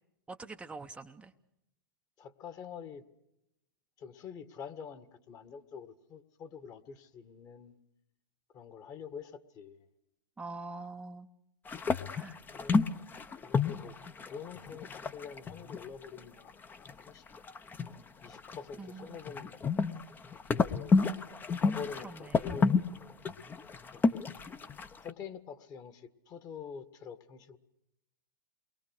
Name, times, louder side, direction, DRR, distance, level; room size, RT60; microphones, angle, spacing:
voice 1, 0.3-1.3 10.4-11.3 12.1-12.4 18.8-19.2 22.0-22.4, right 3 dB, 10° right, 4 dB, 0.8 m, -44 dB
voice 2, 2.2-3.0 4.0-7.8 8.5-9.8 12.5-12.8 13.4-17.2 18.2-19.6 20.5-21.0 21.6-23.1 23.9-24.2 25.0-27.6, left 6 dB, 30° left, 10 dB, 1.8 m, -46 dB
sound 1, 11.7-16.2 16.5-18.7 19.0-25.1, left 4 dB, 15° left, 0.9 m, -30 dB
28.5 x 22.0 x 6.5 m, 0.85 s
hypercardioid pair, 110°, 12 cm